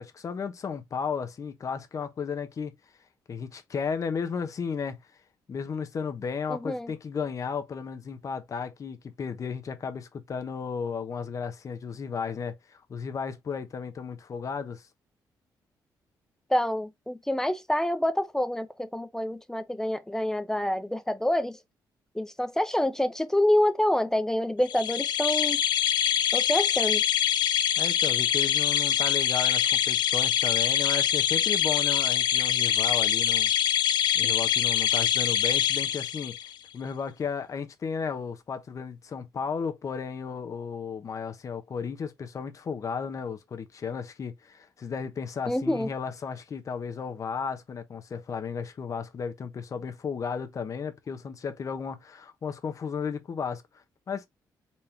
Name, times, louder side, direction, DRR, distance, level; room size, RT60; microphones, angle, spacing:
voice 1, 0.0-2.7 3.3-5.0 5.5-14.9 27.8-33.5 34.1-36.4 36.7-54.3, left 6 dB, 45° left, 1.0 m, -34 dB
voice 2, 6.5-6.9 16.5-21.6 22.1-25.6 26.3-27.0 34.2-34.3 45.5-45.9, left 1 dB, 5° left, 0.6 m, -27 dB
sound 1, 24.7-36.5, left 10 dB, 75° left, 0.6 m, -24 dB
4.3 x 3.5 x 2.8 m
cardioid pair, 100°, 8 cm